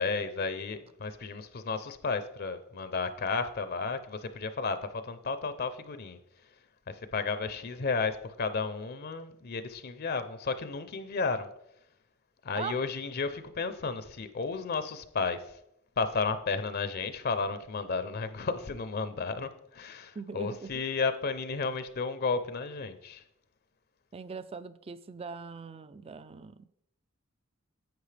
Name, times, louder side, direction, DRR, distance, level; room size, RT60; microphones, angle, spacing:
voice 1, 0.0-6.2 6.9-11.5 12.4-15.6 16.0-23.2, left 4 dB, 45° left, 0.5 m, -33 dB
voice 2, 20.1-20.8 24.1-26.7, right 5 dB, 25° right, 0.4 m, -41 dB
10.5 x 7.9 x 3.3 m
head